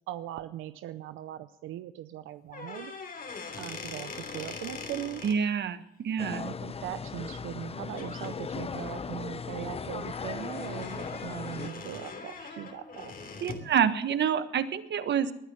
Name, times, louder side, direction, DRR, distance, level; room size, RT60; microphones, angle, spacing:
voice 1, 0.1-2.9 3.6-5.2 6.3-13.1, right 13 dB, 90° right, 12 dB, 0.6 m, -40 dB
sound 1, 2.5-5.4 7.5-7.7 8.0-8.3 8.8-13.7, left 4 dB, 45° left, 3.0 m, -42 dB
voice 2, 5.2-6.4 13.4-15.3, right 8 dB, 60° right, 12 dB, 1.3 m, -27 dB
sound 2, 6.2-11.7, left 5 dB, 30° left, 0.7 m, -38 dB
20.5 x 10.0 x 6.2 m, 0.85 s
cardioid pair, 90°, 20 cm